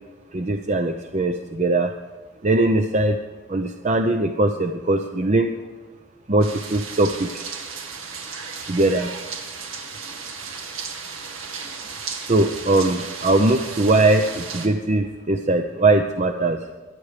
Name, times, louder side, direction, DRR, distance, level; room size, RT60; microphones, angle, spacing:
voice 1, 0.3-1.9 2.4-3.2 3.5-5.5 6.3-7.5 8.7-9.1 12.3-16.6, right 2 dB, 35° right, 6 dB, 0.7 m, -20 dB
sound 1, 6.4-14.7, right 5 dB, 85° right, 2.1 m, -35 dB
23.5 x 9.5 x 5.1 m, 1.4 s
head